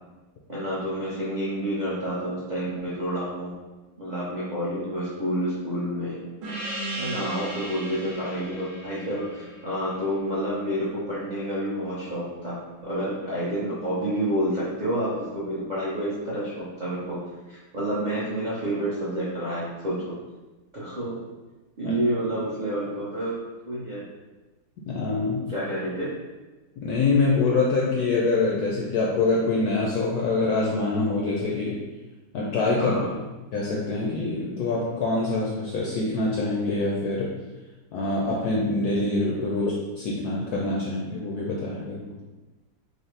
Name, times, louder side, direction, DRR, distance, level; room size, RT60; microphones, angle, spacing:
voice 1, 0.5-3.5 4.0-6.2 7.0-12.6 12.8-17.2 17.5-20.1 20.7-21.1 21.8-23.3 23.6-24.1 25.5-26.0 32.8-33.1, right 1 dB, 65° right, -8 dB, 0.4 m, -29 dB
Gong, 6.4-11.4, right 1 dB, 85° right, 1.7 m, -37 dB
voice 2, 24.9-25.5 26.8-31.8 32.3-33.1 33.5-37.3 37.9-42.0, left 3 dB, 80° left, -3 dB, 0.9 m, -25 dB
5.4 x 2.1 x 3.2 m, 1.2 s
omnidirectional pair, 2.2 m